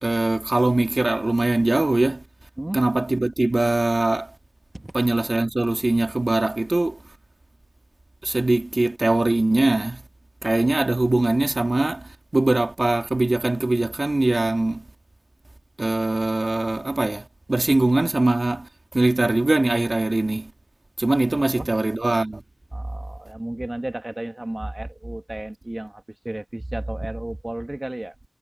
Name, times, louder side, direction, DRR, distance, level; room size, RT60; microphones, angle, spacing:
voice 1, 0.0-2.2 2.7-4.3 4.9-7.0 8.2-10.0 10.4-14.8 15.8-20.5 21.0-22.4, right 2 dB, 55° right, 1.6 m, -22 dB
voice 2, 21.3-21.7 22.7-28.1, right 1 dB, 35° right, 1.5 m, -32 dB
wide cardioid pair, 60°, 0 cm